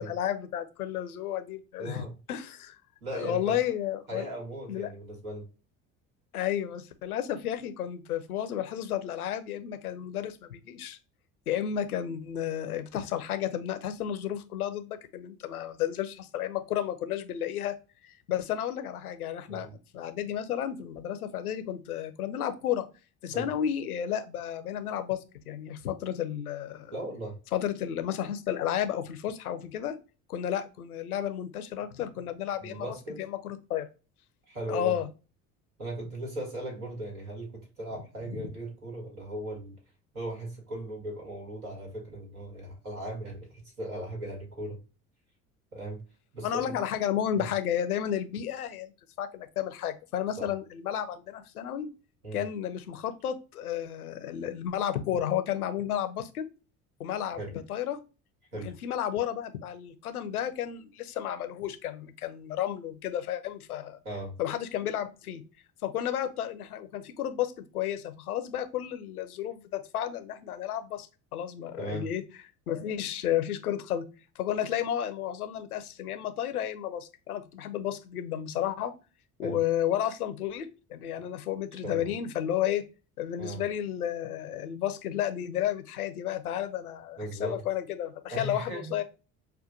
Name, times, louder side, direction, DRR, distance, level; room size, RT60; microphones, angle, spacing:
voice 1, 0.0-2.8 3.1-4.3 4.7-4.9 6.3-11.0 11.5-17.7 18.0-22.8 23.2-26.9 27.5-29.9 30.3-32.9 33.2-33.9 34.7-35.1 38.3-38.5 46.4-48.9 49.2-51.9 52.3-56.4 57.0-58.0 58.6-64.0 64.4-65.4 65.8-71.1 71.3-72.2 72.7-74.1 74.4-78.9 79.4-82.8 83.2-89.0, left 10 dB, 85° left, 9 dB, 0.5 m, -32 dB
voice 2, 1.8-2.1 3.0-3.5 4.1-5.5 19.5-19.7 23.3-23.5 26.9-27.4 32.6-33.2 34.5-35.0 35.8-39.8 40.1-44.8 45.7-46.0 46.3-46.7 47.4-47.5 50.4-50.5 52.2-52.4 57.4-57.5 58.5-58.7 64.0-64.4 71.8-72.1 79.4-79.6 81.7-82.1 83.4-83.6 87.2-87.6 88.3-88.9, right 1 dB, 85° right, -1 dB, 1.6 m, -38 dB
5.5 x 2.2 x 2.5 m, 0.32 s
figure-of-eight pair, 60°, 43 cm